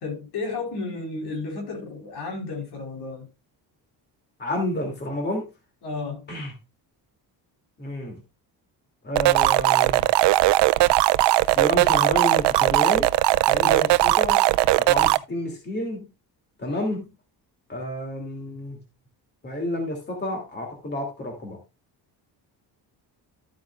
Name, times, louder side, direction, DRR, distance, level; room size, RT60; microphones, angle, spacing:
voice 1, 0.0-3.3 5.8-6.3 13.6-14.0, left 3 dB, 70° left, 4.6 m, -32 dB
voice 2, 4.4-5.5 6.3-6.5 7.8-8.2 9.0-10.1 11.5-13.1 13.5-14.4 14.8-16.1 16.6-17.1 17.7-18.8 19.4-21.6, left 1 dB, 25° left, 2.7 m, -30 dB
sound 1, 9.2-15.2, right 16 dB, 80° right, 0.6 m, -19 dB
14.0 x 8.2 x 2.4 m
cardioid pair, 165°, 40 cm